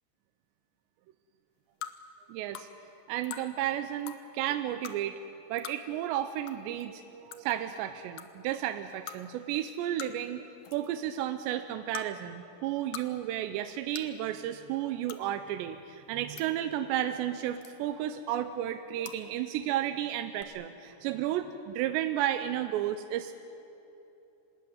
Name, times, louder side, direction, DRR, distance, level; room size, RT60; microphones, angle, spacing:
sound 1, 1.8-1.9 2.5-2.7 3.2-3.4 4.0-4.2 4.8-5.0 5.6-5.8 6.5-6.6 6.8-6.9 7.3-7.5 8.2-8.3 9.1-9.2 10.0-10.3 10.6-10.9 11.9-12.1 12.7-13.1 13.3-13.4 14.0-14.1 15.0-15.2 16.1-16.5 17.6-18.0 19.0-19.2 20.4-20.5, left 11 dB, 80° left, 1.9 m, -42 dB
voice 1, 2.3-2.7 3.1-5.2 5.5-10.4 10.7-23.3, right 12 dB, 80° right, 8 dB, 2.8 m, -33 dB
25.5 x 19.0 x 9.4 m, 2.9 s
omnidirectional pair, 5.3 m